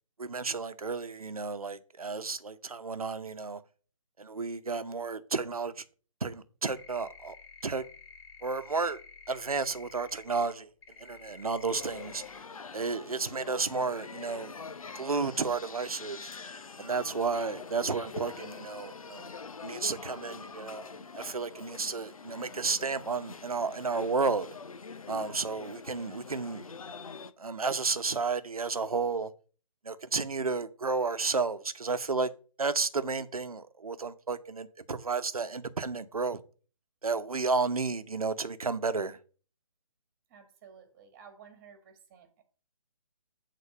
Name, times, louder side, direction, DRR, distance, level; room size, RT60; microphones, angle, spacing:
voice 1, 0.2-3.6 4.2-5.8 6.2-7.4 7.6-7.8 8.4-9.0 9.3-10.7 11.0-12.2 12.7-14.5 14.9-16.3 16.8-19.3 19.6-24.5 25.1-26.7 27.4-29.3 29.8-32.3 32.6-36.4 37.0-39.2, right 4 dB, 85° right, 1.0 m, -32 dB
sound 1, 6.7-10.5 10.8-12.4, left 6 dB, 45° left, 2.5 m, -51 dB
sound 2, 11.7-27.3, left 5 dB, 75° left, 0.8 m, -45 dB
voice 2, 40.3-42.4, right 7 dB, 25° right, 1.7 m, -54 dB
8.4 x 4.1 x 6.7 m
figure-of-eight pair, 150°, 18 cm